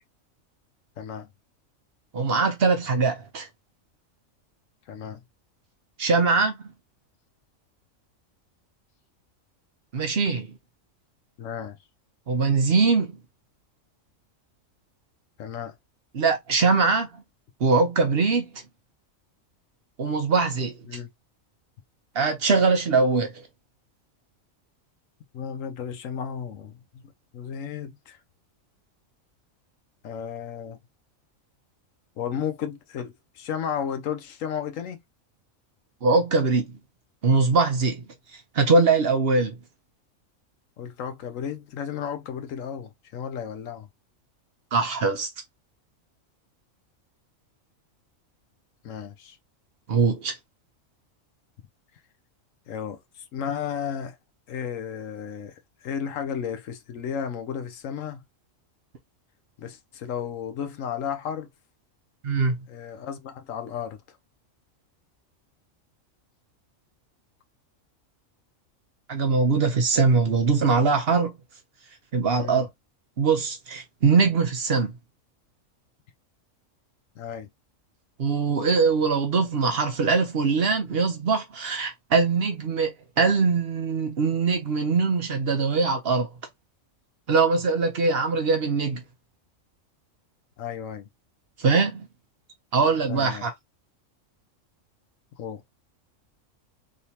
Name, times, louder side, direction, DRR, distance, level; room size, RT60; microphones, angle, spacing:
voice 1, 1.0-1.3 4.9-5.2 11.4-11.8 15.4-15.7 20.9-21.1 25.3-28.2 30.0-30.8 32.2-35.0 40.8-43.9 48.8-49.4 52.7-54.2 54.5-58.2 59.6-61.5 62.7-64.0 72.4-72.7 77.2-77.5 90.6-91.1 93.1-93.5 95.4-95.6, left 8 dB, 75° left, 1.1 m, -33 dB
voice 2, 2.1-3.5 6.0-6.5 9.9-10.5 12.3-13.1 16.1-17.1 17.6-18.5 20.0-20.7 22.1-23.3 36.0-36.7 37.2-38.0 38.5-39.5 44.7-45.3 49.9-50.3 62.2-62.6 69.1-71.3 72.1-72.7 73.2-74.9 78.2-86.3 87.3-89.0 91.6-92.1 92.7-93.5, right 4 dB, 55° right, 0.9 m, -22 dB
3.4 x 2.8 x 2.8 m
omnidirectional pair, 1.4 m